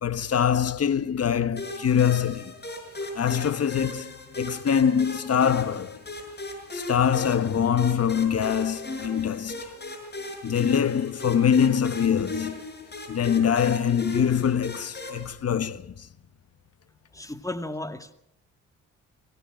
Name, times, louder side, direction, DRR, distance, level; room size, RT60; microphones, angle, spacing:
voice 1, 0.0-2.5 3.1-6.0 6.7-9.7 10.4-12.6 13.1-16.1, left 8 dB, 45° left, 1.3 m, -24 dB
sound 1, 1.6-15.3, left 1 dB, 30° left, 6.5 m, -38 dB
voice 2, 17.1-18.1, left 2 dB, 10° left, 2.2 m, -34 dB
23.5 x 17.5 x 9.0 m
cardioid pair, 70°, 33 cm